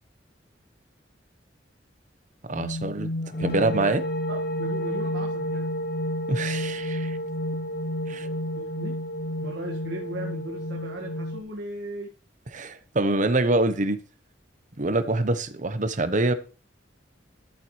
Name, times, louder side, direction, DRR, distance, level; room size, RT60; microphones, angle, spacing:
sound 1, 2.5-11.4, equal, 55° left, 1.2 m, -30 dB
voice 1, 2.5-3.1 3.4-4.0 6.3-7.2 8.1-8.3 12.5-14.0 14.8-16.3, right 2 dB, 45° right, 0.9 m, -25 dB
voice 2, 4.3-5.7 8.1-9.0 9.4-12.1, right 1 dB, 65° right, 1.8 m, -37 dB
13.0 x 7.1 x 3.2 m
head